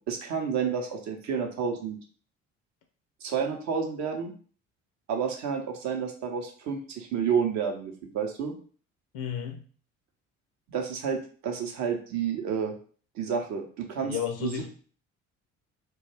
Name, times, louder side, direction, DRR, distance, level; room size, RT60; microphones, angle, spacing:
voice 1, 0.1-2.0 3.2-4.3 5.1-8.5 10.7-12.7 13.1-14.7, right 6 dB, 45° right, 3 dB, 0.7 m, -30 dB
voice 2, 9.1-9.6 14.0-14.7, left 8 dB, 55° left, 5 dB, 0.5 m, -32 dB
2.3 x 2.2 x 3.2 m, 0.43 s
figure-of-eight pair, 50°, 39 cm